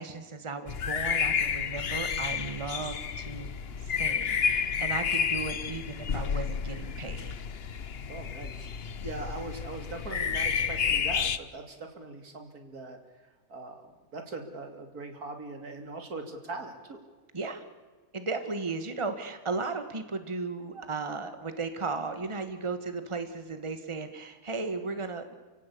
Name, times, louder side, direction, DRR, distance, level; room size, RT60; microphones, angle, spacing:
voice 1, 0.0-3.5 3.8-7.3 17.3-17.6 18.1-25.3, right 4 dB, 20° right, 9 dB, 1.7 m, -35 dB
sound 1, 0.7-11.4, left 6 dB, 45° left, 1.0 m, -30 dB
voice 2, 8.1-17.0, right 3 dB, 85° right, 5 dB, 3.3 m, -41 dB
30.0 x 16.5 x 8.5 m, 1.4 s
omnidirectional pair, 1.6 m